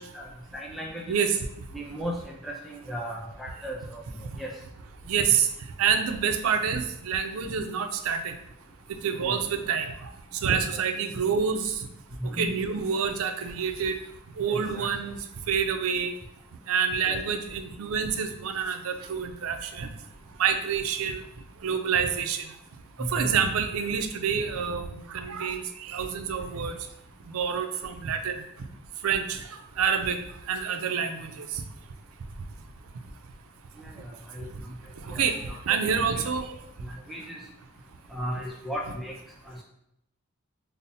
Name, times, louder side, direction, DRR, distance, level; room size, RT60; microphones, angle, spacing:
voice 1, 0.5-1.2 1.7-2.2 2.4-4.0 4.4-4.5 9.2-9.4 10.7-10.8 12.2-12.5 14.5-14.9 17.1-17.2 23.0-23.3 33.9-34.0 34.3-34.5 35.1-35.8 36.9-37.4 38.1-39.1 39.5-39.6, equal, ahead, -2 dB, 0.3 m, -35 dB
voice 2, 5.1-5.5 5.8-8.3 9.0-9.9 10.4-11.7 12.3-13.9 14.4-15.2 15.5-16.1 16.7-19.9 20.4-21.2 21.6-22.4 23.1-26.7 27.3-28.4 29.0-29.4 29.8-30.2 30.5-31.5 35.1-35.4 35.7-36.4, right 6 dB, 80° right, 7 dB, 0.4 m, -27 dB
5.4 x 2.0 x 2.6 m, 0.79 s
head